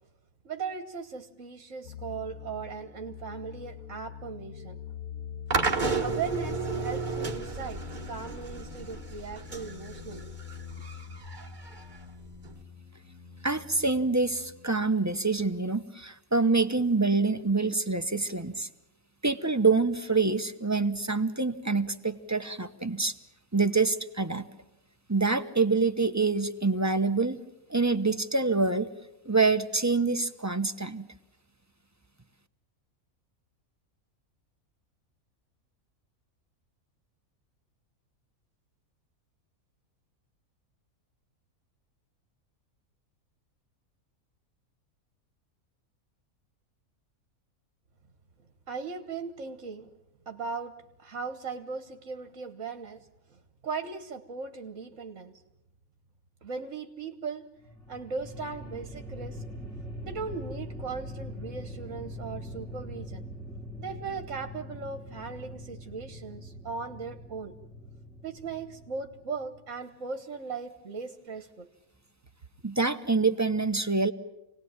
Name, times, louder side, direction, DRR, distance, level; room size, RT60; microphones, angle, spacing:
voice 1, 0.4-4.8 6.0-10.3 48.7-49.9 50.2-55.4 56.4-57.5 57.9-59.4 60.0-63.2 63.8-67.5 68.2-71.7, right 5 dB, 60° right, 7 dB, 1.7 m, -38 dB
sound 1, 1.8-14.8, left 8 dB, 55° left, 3.2 m, -44 dB
sound 2, 5.5-12.6, right 4 dB, 35° right, 1.7 m, -33 dB
voice 2, 13.4-18.7 19.2-23.1 23.5-24.5 25.1-27.4 27.7-28.9 29.2-31.1 72.6-74.1, right 3 dB, 15° right, 8 dB, 0.8 m, -26 dB
sound 3, 57.6-69.9, equal, 5° left, 2.9 m, -42 dB
27.5 x 19.0 x 9.0 m, 0.92 s
omnidirectional pair, 1.5 m